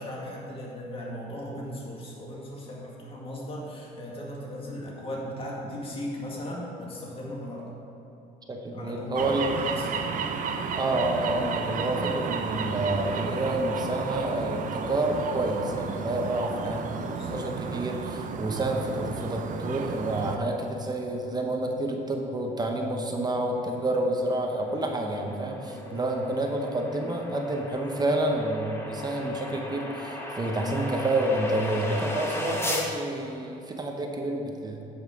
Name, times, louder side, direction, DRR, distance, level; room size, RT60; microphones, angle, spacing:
voice 1, 0.0-7.7 8.7-9.9 17.0-17.5 24.8-25.2 25.6-26.0, left 1 dB, 35° left, -4 dB, 2.0 m, -38 dB
voice 2, 8.5-9.5 10.8-17.1 17.3-34.8, right 1 dB, 25° right, 2 dB, 0.9 m, -29 dB
sound 1, 9.1-20.4, right 5 dB, 50° right, 0.7 m, -32 dB
sound 2, 24.2-32.9, left 1 dB, 15° left, 1.2 m, -37 dB
9.2 x 5.6 x 5.2 m, 3.0 s
cardioid pair, 110°, 17 cm